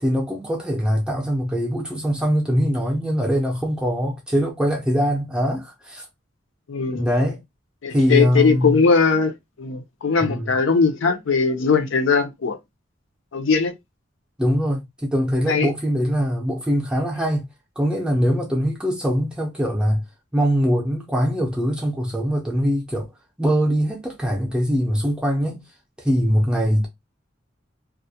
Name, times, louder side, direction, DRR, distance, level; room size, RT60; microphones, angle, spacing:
voice 1, 0.0-6.1 6.9-7.4 7.9-8.8 10.2-10.5 14.4-17.4 17.8-20.0 20.3-23.1 23.4-25.6 26.0-26.9, equal, 5° right, 0.5 m, -22 dB
voice 2, 6.7-7.1 7.8-12.6 13.3-13.7 15.5-15.7, left 5 dB, 80° left, 0.5 m, -20 dB
2.3 x 2.1 x 2.7 m
head